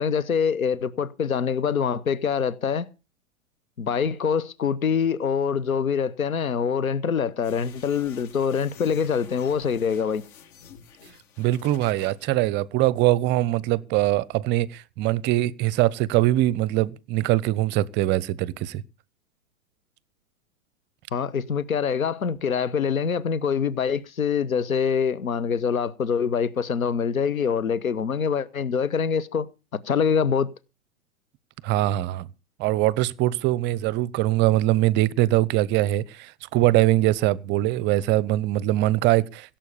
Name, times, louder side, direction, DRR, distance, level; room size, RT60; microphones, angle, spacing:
voice 1, 0.0-2.9 3.8-10.2 21.1-29.5 29.7-30.5, left 6 dB, 85° left, 1.1 m, -25 dB
sound 1, 7.4-12.3, left 7 dB, 55° left, 5.8 m, -49 dB
voice 2, 11.4-18.8 31.6-32.3 32.6-39.6, right 16 dB, 25° right, 0.7 m, -22 dB
17.0 x 7.5 x 7.0 m
hypercardioid pair, 110°, 41 cm